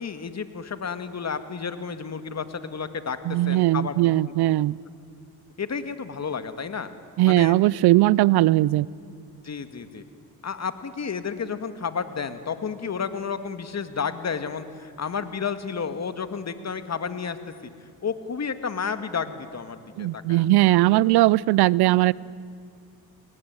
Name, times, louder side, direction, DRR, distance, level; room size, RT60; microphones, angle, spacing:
voice 1, 0.0-3.2 3.5-4.1 5.6-6.9 7.3-7.5 9.4-10.0 10.4-17.7 18.0-20.5, left 6 dB, 45° left, 10 dB, 2.1 m, -31 dB
voice 2, 3.3-4.8 7.2-8.9 20.0-22.1, right 17 dB, 80° right, 23 dB, 0.6 m, -19 dB
29.5 x 19.5 x 9.7 m, 2.3 s
supercardioid pair, 70°, 38 cm